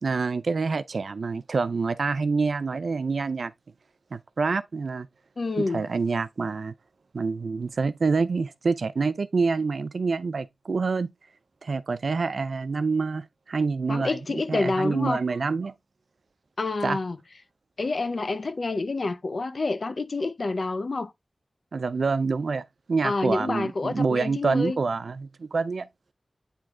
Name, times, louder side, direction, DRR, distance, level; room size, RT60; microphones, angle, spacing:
voice 1, 0.0-3.5 4.1-5.1 5.6-6.7 7.1-11.1 11.6-15.7 16.8-17.0 21.7-25.9, right 4 dB, 85° right, 0.4 m, -27 dB
voice 2, 5.4-5.9 13.9-15.2 16.6-17.2 17.8-21.1 23.0-24.8, left 3 dB, 60° left, 0.6 m, -28 dB
9.1 x 3.1 x 3.7 m
wide cardioid pair, 90°, 0 cm